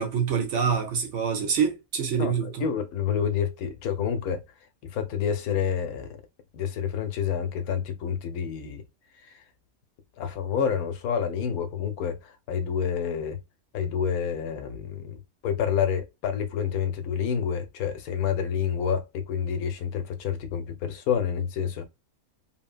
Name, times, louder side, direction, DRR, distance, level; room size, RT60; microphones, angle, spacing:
voice 1, 0.0-2.6, right 6 dB, 65° right, 0.8 m, -26 dB
voice 2, 2.1-4.4 4.8-6.2 6.5-8.8 9.2-9.4 10.2-13.4 13.7-21.9, left 7 dB, 80° left, 1.0 m, -28 dB
2.9 x 2.1 x 2.4 m
omnidirectional pair, 1.6 m